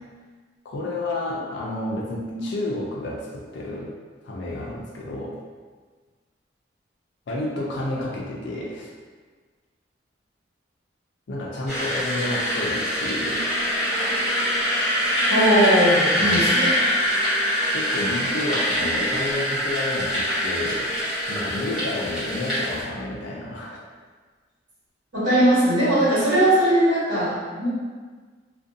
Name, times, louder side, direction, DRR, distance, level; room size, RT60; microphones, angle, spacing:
voice 1, 0.6-3.9 4.2-5.4 7.3-8.9 11.3-13.5 16.2-16.5 17.7-20.9 21.3-23.8, left 1 dB, 65° left, -3 dB, 0.4 m, -30 dB
sound 1, 11.7-22.8, equal, ahead, 0.9 m, -24 dB
voice 2, 15.3-16.8 25.1-27.7, right 1 dB, 75° right, -14 dB, 1.3 m, -19 dB
2.5 x 2.1 x 2.6 m, 1.4 s
head